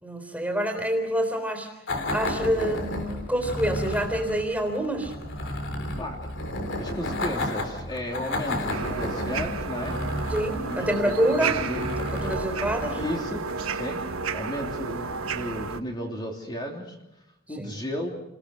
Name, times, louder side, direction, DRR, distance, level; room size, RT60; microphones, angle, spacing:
voice 1, 0.0-1.7 2.1-5.1 10.3-11.6 12.0-13.0 17.6-17.7, right 1 dB, 5° right, 4 dB, 3.9 m, -27 dB
sound 1, 1.9-14.0, left 1 dB, 55° left, 3.7 m, -33 dB
voice 2, 6.8-10.0 10.6-12.3 13.0-13.4 13.7-14.0 14.3-17.0 17.5-18.1, left 1 dB, 20° left, 0 dB, 3.1 m, -34 dB
sound 2, 8.7-15.8, right 4 dB, 70° right, 1.2 m, -32 dB
29.5 x 21.0 x 6.5 m, 0.90 s
head